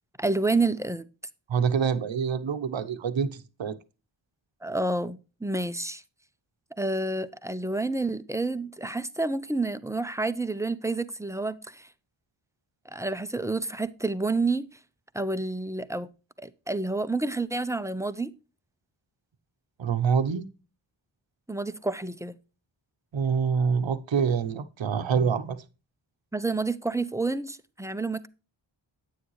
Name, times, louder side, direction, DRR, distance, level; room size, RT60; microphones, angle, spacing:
voice 1, 0.2-1.1 4.6-6.0 6.8-11.9 12.9-14.7 15.1-16.1 16.4-18.3 21.5-22.4 26.3-28.3, right 3 dB, 5° right, 0.7 m, -29 dB
voice 2, 1.5-3.8 19.8-20.5 23.1-25.6, right 6 dB, 70° right, 0.9 m, -26 dB
9.9 x 9.1 x 3.1 m
wide cardioid pair, 85°, 47 cm